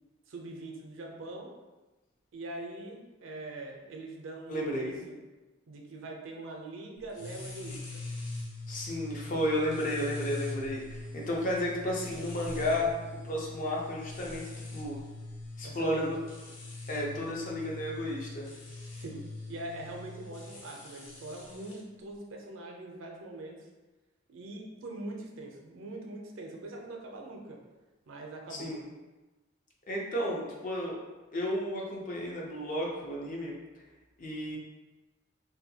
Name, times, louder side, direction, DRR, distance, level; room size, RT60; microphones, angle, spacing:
voice 1, 0.3-1.5 2.3-5.2 5.7-8.0 15.6-16.2 18.9-23.6 24.3-27.6 28.1-28.8, right 2 dB, 70° right, 0 dB, 0.5 m, -42 dB
voice 2, 4.5-5.0 8.7-15.0 15.6-16.2 16.9-18.5 28.5-28.8 29.9-31.0 31.3-33.6 34.2-34.6, left 1 dB, 40° left, -2 dB, 0.5 m, -33 dB
sound 1, 7.1-21.8, left 2 dB, 80° left, 0.7 m, -42 dB
2.7 x 2.2 x 2.7 m, 1.2 s
head